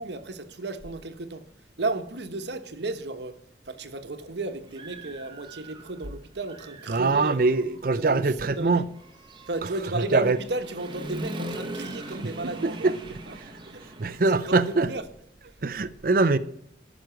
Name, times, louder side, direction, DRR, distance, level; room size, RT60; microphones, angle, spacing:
voice 1, 0.0-1.5 1.8-7.4 8.0-8.9 9.5-12.9 13.3-13.4 13.7-15.1 15.5-15.6, right 2 dB, 75° right, 1.1 m, -34 dB
Human voice / Motorcycle, 3.7-3.8 4.3-6.1 6.4-15.0, right 1 dB, 25° right, 1.2 m, -41 dB
voice 2, 6.9-8.8 10.1-10.4 12.8-12.9 14.0-14.9 15.6-16.4, right 3 dB, 50° right, 0.6 m, -22 dB
14.0 x 6.1 x 5.9 m
head